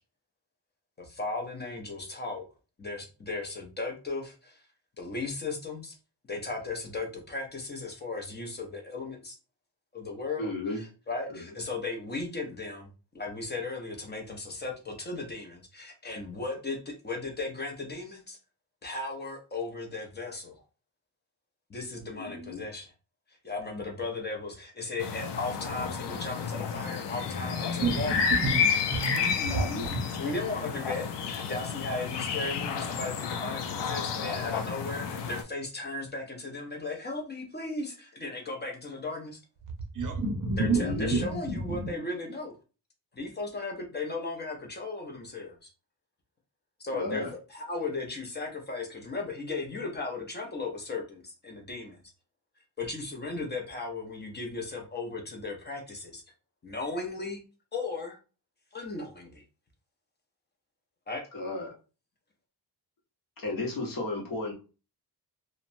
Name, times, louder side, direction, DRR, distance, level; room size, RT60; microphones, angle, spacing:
voice 1, 1.0-2.4 2.8-4.6 5.0-6.0 6.3-9.4 9.9-18.4 18.8-20.6 21.7-22.9 23.4-28.2 30.1-39.4 40.6-42.5 43.1-45.7 46.8-52.0 52.8-56.2 56.6-57.4 57.7-58.2 58.7-59.4 61.1-61.2, left 3 dB, 25° left, 0.6 m, -36 dB
voice 2, 10.4-10.8 11.3-11.4 22.1-22.6 29.4-29.9 40.6-41.2 46.9-47.3 61.3-61.7 63.4-64.5, left 2 dB, 55° left, 1.0 m, -34 dB
sound 1, 25.0-35.4, left 6 dB, 80° left, 0.5 m, -31 dB
voice 3, 27.8-28.6 28.9-30.0 39.9-40.8 41.1-41.3 41.7-41.9, right 4 dB, 50° right, 0.6 m, -29 dB
2.9 x 2.1 x 2.6 m
wide cardioid pair, 150°, 41 cm